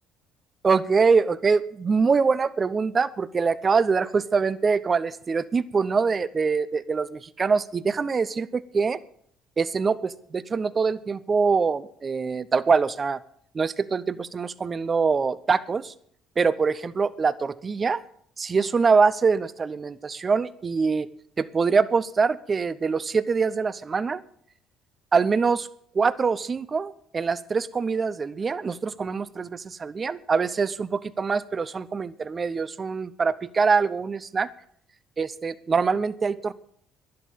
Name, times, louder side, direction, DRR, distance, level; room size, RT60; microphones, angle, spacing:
voice 1, 0.6-9.0 9.6-13.2 13.5-15.9 16.4-18.0 18.4-21.1 21.4-24.2 25.1-25.7 25.9-34.5 35.2-36.5, right 5 dB, 35° right, 15 dB, 0.9 m, -24 dB
11.5 x 11.0 x 7.3 m, 0.63 s
hypercardioid pair, 60°, 0 cm